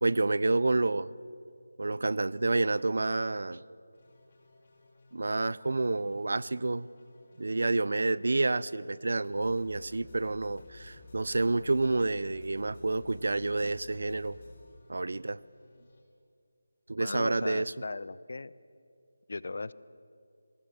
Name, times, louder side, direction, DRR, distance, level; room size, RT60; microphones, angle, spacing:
voice 1, 0.0-1.1 1.8-3.6 5.1-6.9 7.4-14.4 14.9-15.4 16.9-17.7, right 2 dB, 70° right, 20 dB, 0.6 m, -29 dB
sound 1, 3.9-16.0, left 3 dB, 35° left, 4.3 m, -55 dB
voice 2, 17.0-18.5 19.3-19.7, left 3 dB, 55° left, 18 dB, 0.7 m, -37 dB
24.0 x 20.0 x 7.0 m, 2.4 s
figure-of-eight pair, 170°, 0 cm